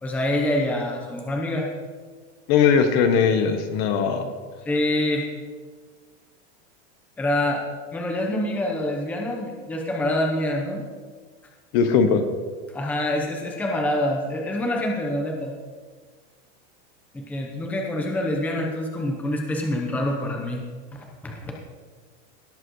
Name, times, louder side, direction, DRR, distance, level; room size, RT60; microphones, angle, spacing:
voice 1, 0.0-1.7 4.7-5.3 7.2-7.6 7.9-10.8 12.7-15.5 17.1-20.6 20.9-21.5, left 1 dB, 5° left, 1 dB, 0.8 m, -26 dB
voice 2, 2.5-4.3 11.7-12.2, left 6 dB, 40° left, 8 dB, 0.9 m, -19 dB
17.5 x 7.5 x 3.1 m, 1.5 s
supercardioid pair, 170°, 33 cm